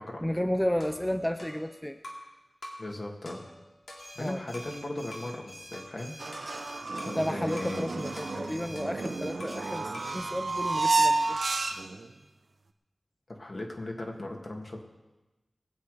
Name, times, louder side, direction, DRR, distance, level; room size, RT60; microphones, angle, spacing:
voice 1, 0.2-2.0 4.2-4.4 7.2-11.4, equal, 5° left, 8 dB, 0.5 m, -32 dB
sound 1, 0.8-2.3 2.6-2.9 3.3-4.8 5.1-5.4 5.7-7.2 7.6-7.8 8.2-9.7 9.9-10.2, left 1 dB, 85° left, 2.6 m, -47 dB
voice 2, 2.8-3.4 4.2-6.7 7.0-7.9 8.3-8.6 13.3-14.8, left 1 dB, 55° left, 1 dB, 2.1 m, -38 dB
sound 2, 4.0-11.8, equal, 70° left, 5.3 m, -47 dB
sound 3, 6.2-12.1, right 3 dB, 80° right, 0.8 m, -30 dB
20.5 x 8.3 x 4.9 m, 1.1 s
wide cardioid pair, 80°, 0 cm